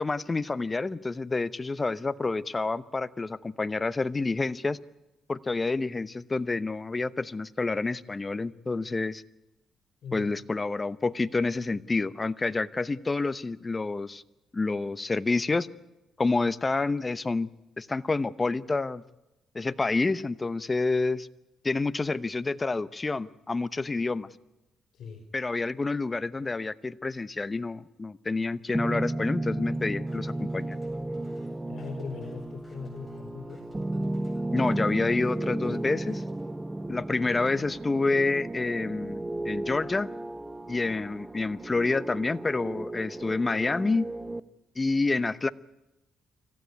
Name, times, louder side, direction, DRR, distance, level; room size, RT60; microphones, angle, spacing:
voice 1, 0.0-4.8 5.3-9.2 10.1-14.2 14.5-15.7 16.2-17.5 17.8-19.0 19.5-21.3 21.6-24.3 25.3-30.8 34.5-36.2 36.9-40.1 40.7-44.1 44.8-45.5, left 3 dB, 25° left, 15 dB, 0.9 m, -28 dB
voice 2, 24.9-25.2 31.7-33.7, left 5 dB, 65° left, 5 dB, 3.9 m, -40 dB
sound 1, 28.7-44.4, right 2 dB, 15° right, 0.9 m, -34 dB
sound 2, 29.6-36.5, left 1 dB, 10° left, 7.9 m, -63 dB
25.5 x 16.0 x 9.5 m, 0.96 s
cardioid pair, 90°, 0 cm